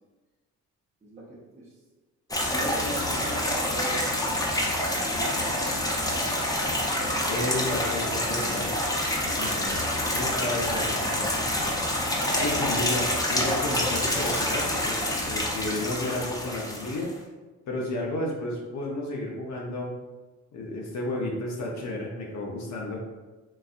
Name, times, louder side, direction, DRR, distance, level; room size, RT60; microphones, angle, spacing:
voice 1, 1.0-1.7 2.4-4.1 4.7-5.9 12.3-12.4, right 1 dB, 25° right, -7 dB, 0.7 m, -39 dB
sound 1, 2.3-17.1, left 1 dB, 10° left, 0.6 m, -27 dB
voice 2, 7.2-8.7 9.3-9.8 10.1-11.4 12.4-17.1 17.7-19.9 20.5-23.0, left 1 dB, 65° left, -1 dB, 0.7 m, -32 dB
3.9 x 2.6 x 2.5 m, 1.2 s
cardioid pair, 90°, 30 cm